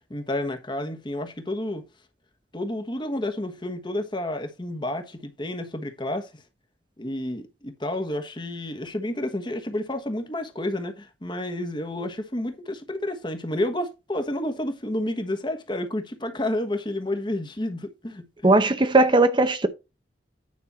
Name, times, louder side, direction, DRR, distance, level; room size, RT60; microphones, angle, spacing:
voice 1, 0.1-1.8 2.5-6.4 7.0-18.6, left 1 dB, 25° left, 1.2 m, -30 dB
voice 2, 18.4-19.7, right 2 dB, 25° right, 0.7 m, -18 dB
9.7 x 5.3 x 4.3 m
head